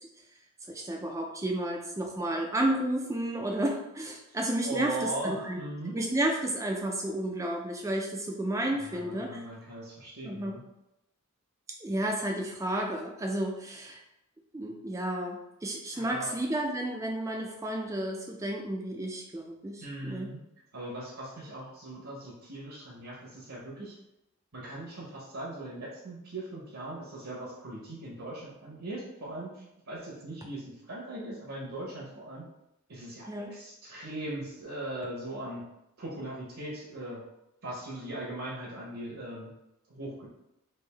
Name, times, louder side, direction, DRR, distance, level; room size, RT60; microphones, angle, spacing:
voice 1, 0.7-5.6 5.9-9.4 10.2-10.6 11.8-14.0 14.5-20.3 33.2-33.5, right 1 dB, 15° right, 1 dB, 0.3 m, -32 dB
voice 2, 4.6-5.9 8.8-10.6 15.9-16.3 19.8-20.4 20.7-23.9 24.5-32.4 32.9-35.6 36.0-37.2 37.6-39.5 39.9-40.3, right 1 dB, 70° right, -5 dB, 0.9 m, -39 dB
3.3 x 2.6 x 3.3 m, 0.89 s
head